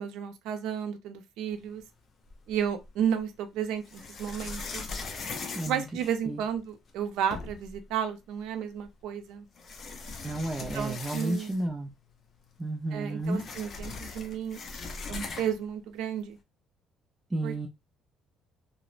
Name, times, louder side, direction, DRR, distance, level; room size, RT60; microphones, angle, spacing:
voice 1, 0.0-1.8 2.5-4.9 5.7-9.5 10.7-11.5 12.9-14.6 15.1-16.4 17.4-17.7, right 8 dB, 80° right, 0.5 m, -32 dB
sound 1, 2.3-3.0 3.8-6.6 7.0-7.1 7.3-7.8 8.8-8.9 9.5-11.8 12.1-12.2 12.5-15.7, left 4 dB, 45° left, 0.6 m, -40 dB
voice 2, 5.5-5.9 6.3-6.4 10.2-11.9 12.6-13.4 17.3-17.7, right 2 dB, 15° right, 0.4 m, -32 dB
2.8 x 2.0 x 2.4 m
cardioid pair, 110°, 0 cm